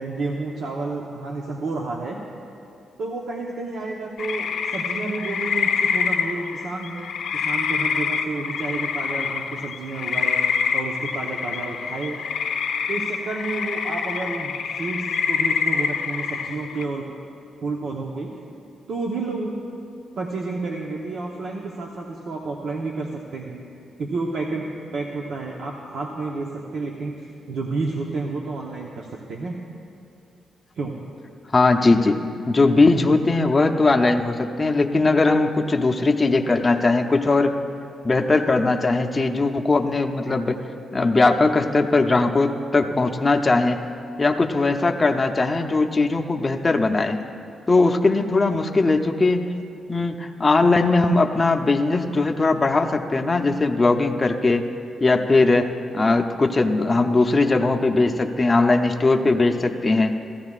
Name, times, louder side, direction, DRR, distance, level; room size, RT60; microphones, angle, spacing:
voice 1, 0.0-2.2 3.0-10.4 10.7-12.2 12.9-17.1 17.6-18.3 18.9-19.6 20.2-23.6 24.0-29.6 30.8-30.9, right 3 dB, 70° right, -1 dB, 0.9 m, -30 dB
sound 1, 4.2-16.8, left 6 dB, 75° left, 0.6 m, -26 dB
voice 2, 31.5-32.2 32.5-37.6 38.0-40.6 40.9-43.8 44.2-47.2 47.7-49.5 49.9-54.7 55.0-60.2, left 3 dB, 25° left, 3 dB, 0.6 m, -19 dB
16.5 x 14.5 x 2.4 m, 2.5 s
cardioid pair, 105°, 0 cm